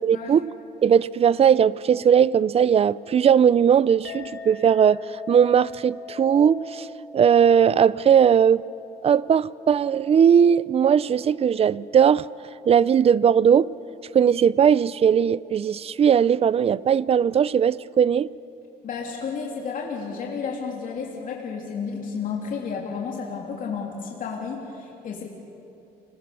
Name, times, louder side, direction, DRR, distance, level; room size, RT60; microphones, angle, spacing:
voice 1, 0.0-0.5 0.8-5.0 5.3-6.9 7.1-8.6 9.0-12.3 12.7-13.7 14.1-18.3, right 8 dB, 35° right, 0.5 m, -18 dB
Chink clink, 4.0-12.8, left 5 dB, 85° left, 3.5 m, -42 dB
voice 2, 18.8-25.2, left 5 dB, 50° left, 3.1 m, -32 dB
30.0 x 21.5 x 6.9 m
cardioid pair, 110°, 17 cm